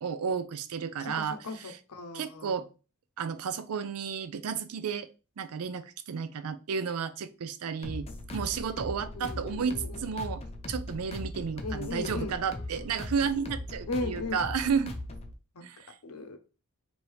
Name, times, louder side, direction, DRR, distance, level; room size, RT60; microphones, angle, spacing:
voice 1, 0.0-1.4 1.6-1.8 2.1-2.7 3.2-5.1 5.4-14.9 15.6-15.9, right 6 dB, 85° right, 0.4 m, -32 dB
voice 2, 1.0-2.6 9.1-10.1 11.6-12.3 13.9-14.4 15.5-15.6 16.0-16.4, left 2 dB, 85° left, 0.7 m, -37 dB
sound 1, 7.8-15.3, left 1 dB, 25° left, 0.5 m, -39 dB
4.7 x 2.7 x 3.1 m
head